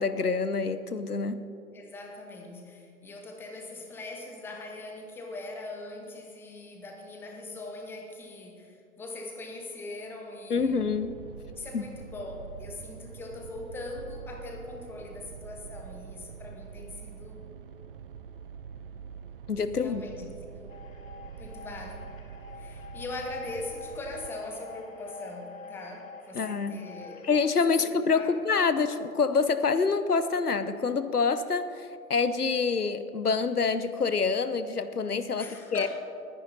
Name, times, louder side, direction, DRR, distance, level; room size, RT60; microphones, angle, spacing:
voice 1, 0.0-1.4 10.5-11.2 11.7-11.9 19.5-20.0 26.3-26.9 27.2-35.9, left 5 dB, 85° left, 12 dB, 0.8 m, -27 dB
voice 2, 1.7-10.9 11.5-17.4 19.8-20.8 21.4-22.1 22.5-27.3 27.7-27.8 28.1-28.3 35.4-35.9, left 2 dB, 5° left, 2 dB, 0.9 m, -41 dB
sound 1, 10.6-24.3, right 7 dB, 40° right, 0.6 m, -45 dB
sound 2, 20.7-27.5, left 5 dB, 60° left, 1.5 m, -47 dB
19.5 x 10.0 x 4.0 m, 2.6 s
figure-of-eight pair, 120°, 45 cm